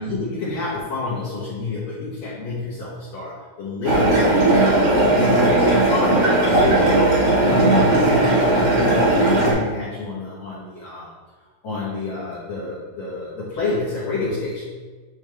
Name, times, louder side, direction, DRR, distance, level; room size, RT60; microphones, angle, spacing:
voice 1, 0.0-7.0 7.4-11.1 11.6-14.7, left 3 dB, 70° left, -8 dB, 1.6 m, -28 dB
sound 1, 3.8-9.5, right 2 dB, 45° right, 2.2 m, -17 dB
9.1 x 3.2 x 3.3 m, 1.4 s
omnidirectional pair, 4.8 m